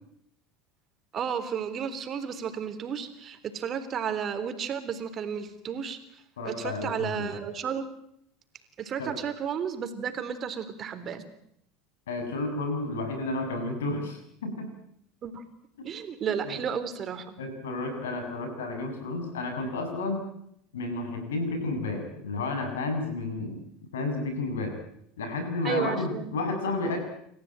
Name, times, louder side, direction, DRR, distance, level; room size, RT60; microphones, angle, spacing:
voice 1, 1.1-6.0 6.4-7.8 8.8-11.2 15.2-15.4 15.8-17.3 25.6-26.3, right 7 dB, 40° right, 9 dB, 3.7 m, -32 dB
voice 2, 6.4-7.3 9.0-9.1 12.1-14.7 15.8-15.9 16.4-16.6 17.4-20.3 20.7-23.6 23.9-24.7 25.2-27.0, left 2 dB, 85° left, 6 dB, 7.2 m, -31 dB
28.5 x 15.0 x 9.1 m, 0.72 s
hypercardioid pair, 85°, 0 cm